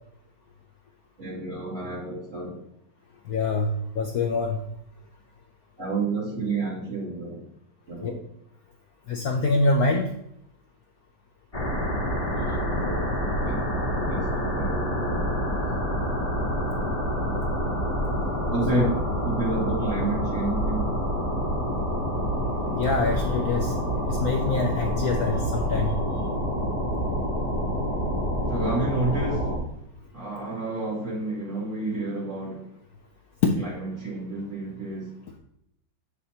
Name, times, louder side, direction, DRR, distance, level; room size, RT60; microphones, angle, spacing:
voice 1, 1.2-2.6 5.8-7.5 7.9-8.2 12.4-13.2 13.4-15.6 18.5-18.9 19.2-21.0 28.5-29.6 30.1-32.7 33.6-35.2, right 3 dB, 40° right, -5 dB, 2.5 m, -30 dB
voice 2, 3.3-4.6 8.0-8.1 9.1-10.1 18.7-18.9 22.7-23.7 24.1-26.0 33.4-33.5, left 3 dB, 65° left, 3 dB, 1.0 m, -25 dB
sound 1, 11.5-29.6, equal, 20° left, 1.3 m, -27 dB
7.5 x 6.6 x 2.8 m, 0.75 s
omnidirectional pair, 2.1 m